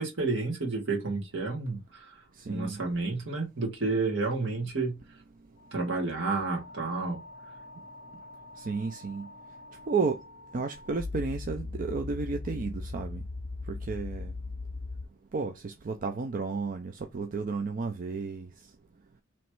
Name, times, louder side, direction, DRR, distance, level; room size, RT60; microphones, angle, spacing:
voice 1, 0.0-2.1 2.5-5.0 5.7-7.2, right 3 dB, 65° right, 1.6 m, -30 dB
voice 2, 2.4-2.8 8.6-9.3 9.9-10.2 10.5-13.2 13.7-14.3 15.3-18.5, right 4 dB, 40° right, 0.4 m, -32 dB
sound 1, 5.6-15.1, left 3 dB, 45° left, 0.5 m, -41 dB
3.1 x 3.0 x 4.5 m
head